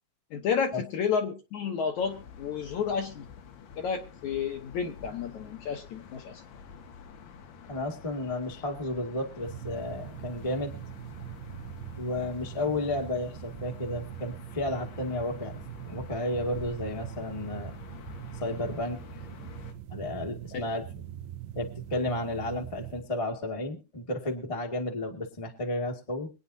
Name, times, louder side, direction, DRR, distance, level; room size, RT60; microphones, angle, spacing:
voice 1, 0.3-3.3 3.8-6.4, left 6 dB, 65° left, 3 dB, 2.2 m, -31 dB
sound 1, 2.0-19.7, left 6 dB, 85° left, 3.7 m, -48 dB
voice 2, 7.7-10.8 12.0-15.5 15.8-17.7 18.4-19.0 19.9-21.0 21.5-26.3, left 1 dB, 15° left, 1 dB, 1.0 m, -32 dB
sound 2, 9.4-23.1, right 11 dB, 80° right, 2.6 m, -42 dB
24.0 x 9.5 x 2.7 m, 0.33 s
omnidirectional pair, 4.4 m